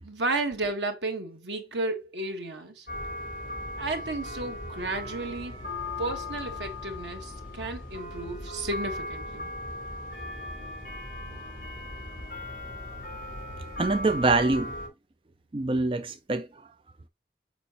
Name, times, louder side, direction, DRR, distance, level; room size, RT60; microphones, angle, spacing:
voice 1, 0.0-2.9 3.8-5.6 6.0-9.5, right 2 dB, 90° right, 1.4 m, -33 dB
sound 1, 2.9-14.9, left 1 dB, 45° left, 3.9 m, -37 dB
voice 2, 13.8-14.7 15.5-16.5, right 3 dB, 30° right, 0.5 m, -25 dB
6.8 x 5.3 x 2.9 m
head